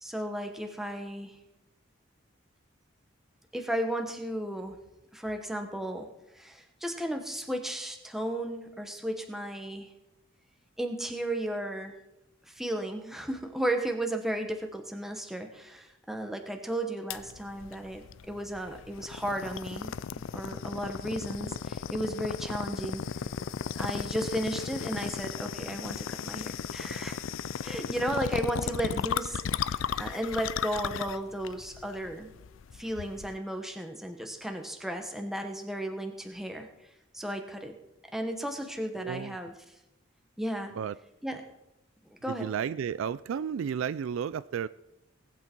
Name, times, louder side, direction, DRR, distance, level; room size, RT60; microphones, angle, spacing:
voice 1, 0.0-1.4 3.5-4.8 5.1-6.1 6.3-9.9 10.8-11.9 12.5-23.0 23.8-27.2 27.6-32.3 32.7-36.7 37.1-37.7 38.1-39.5 40.4-40.7 41.2-41.5 42.1-42.5, right 1 dB, ahead, 4 dB, 1.1 m, -34 dB
sound 1, 17.1-33.4, left 7 dB, 75° left, 0.4 m, -35 dB
voice 2, 39.0-39.4 40.8-40.9 42.3-44.7, right 7 dB, 80° right, 16 dB, 0.3 m, -32 dB
18.5 x 8.4 x 4.5 m, 0.90 s
head